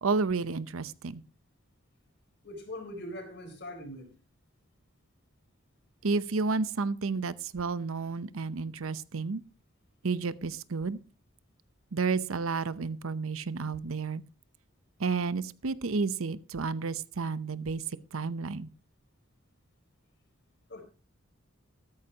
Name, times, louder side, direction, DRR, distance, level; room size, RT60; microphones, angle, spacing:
voice 1, 0.0-1.2 6.0-9.4 10.0-11.0 11.9-14.2 15.0-18.7, right 4 dB, 80° right, 0.7 m, -31 dB
voice 2, 2.4-4.1 20.7-20.8, left 1 dB, 55° left, 4.2 m, -41 dB
13.5 x 13.5 x 2.9 m
head